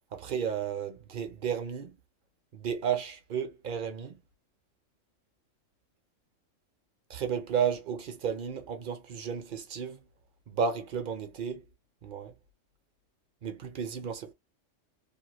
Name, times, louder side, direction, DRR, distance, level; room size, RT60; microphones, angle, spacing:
voice 1, 0.1-1.9 2.5-4.2 7.1-10.0 10.5-11.6 12.0-12.3 13.4-14.3, right 7 dB, 50° right, 0.7 m, -33 dB
2.7 x 2.2 x 2.9 m
omnidirectional pair, 1.3 m